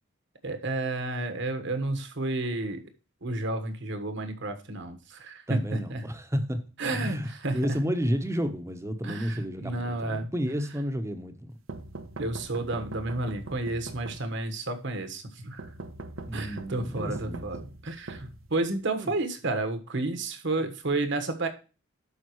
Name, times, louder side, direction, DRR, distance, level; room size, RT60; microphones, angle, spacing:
voice 1, 0.4-2.8 3.2-6.0 6.8-7.8 9.0-10.3 12.2-15.7 16.3-21.5, right 2 dB, 60° right, 1.4 m, -31 dB
voice 2, 5.5-11.5 16.3-17.4 19.0-19.1, equal, 15° right, 0.9 m, -31 dB
sound 1, 11.7-14.6 15.6-18.9, right 2 dB, 75° right, 0.9 m, -42 dB
12.0 x 5.3 x 3.1 m
head